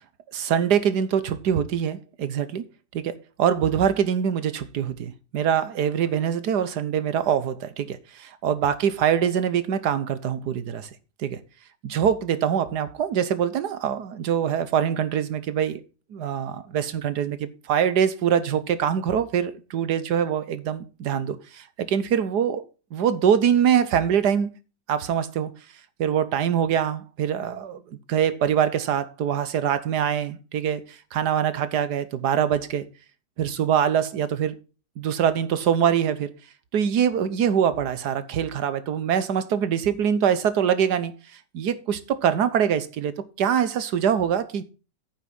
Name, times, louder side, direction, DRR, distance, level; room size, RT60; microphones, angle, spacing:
voice 1, 0.3-2.6 2.9-3.1 3.4-10.9 11.2-11.4 11.8-15.8 16.1-22.6 22.9-24.5 24.9-25.5 26.0-27.8 28.1-32.8 33.4-34.5 35.0-36.3 36.7-41.1 41.5-44.6, right 8 dB, 70° right, 1.6 m, -24 dB
9.5 x 7.4 x 5.4 m
omnidirectional pair, 1.9 m